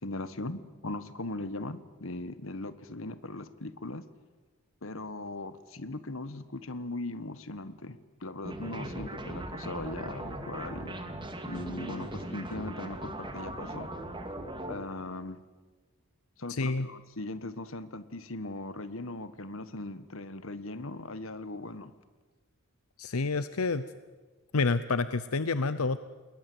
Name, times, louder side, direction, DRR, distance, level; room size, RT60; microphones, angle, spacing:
voice 1, 0.0-4.0 4.8-11.0 11.4-13.9 14.6-15.4 16.4-21.9, left 2 dB, 65° left, 13 dB, 1.5 m, -39 dB
sound 1, 8.4-14.8, right 1 dB, 20° right, 2.5 m, -39 dB
voice 2, 16.5-16.9 23.0-23.8 24.5-26.0, left 3 dB, 85° left, 13 dB, 0.8 m, -28 dB
28.5 x 21.5 x 8.0 m, 1.3 s
head